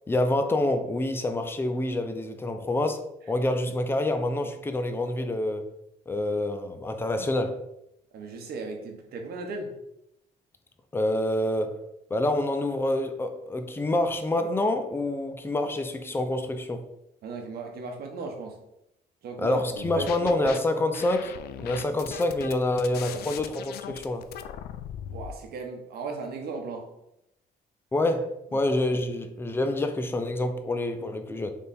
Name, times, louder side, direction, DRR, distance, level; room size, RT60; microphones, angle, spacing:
voice 1, 0.1-3.0 3.3-5.6 6.1-7.6 10.9-11.8 12.1-16.8 19.4-24.2 27.9-31.5, left 1 dB, 15° left, 6 dB, 0.5 m, -27 dB
voice 2, 8.1-9.7 17.2-18.6 19.2-19.6 19.9-20.5 25.1-26.9, right 4 dB, 65° right, 3 dB, 1.0 m, -36 dB
sound 1, 19.8-20.6 20.9-25.4, left 9 dB, 70° left, 0.4 m, -39 dB
3.6 x 3.3 x 4.1 m, 0.83 s
cardioid pair, 115°, 17 cm